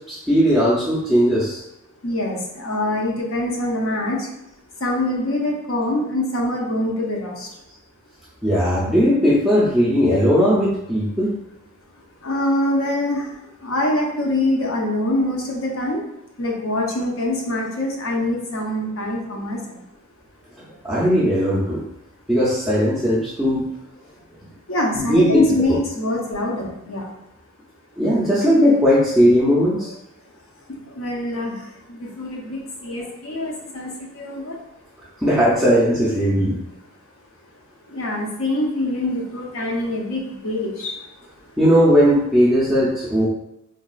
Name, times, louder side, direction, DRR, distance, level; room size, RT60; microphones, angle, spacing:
voice 1, 0.1-1.6 8.4-11.3 20.8-21.8 22.3-23.7 25.1-25.4 28.0-29.9 35.2-36.6 41.6-43.3, equal, ahead, -10 dB, 0.4 m, -17 dB
voice 2, 2.0-4.2 4.8-7.3 12.2-13.2 13.6-16.0 16.4-19.6 24.7-27.0 31.0-31.5 32.0-33.9 34.2-34.5 37.9-40.9, left 1 dB, 65° left, -1 dB, 0.6 m, -24 dB
3.8 x 2.3 x 2.3 m, 0.85 s
head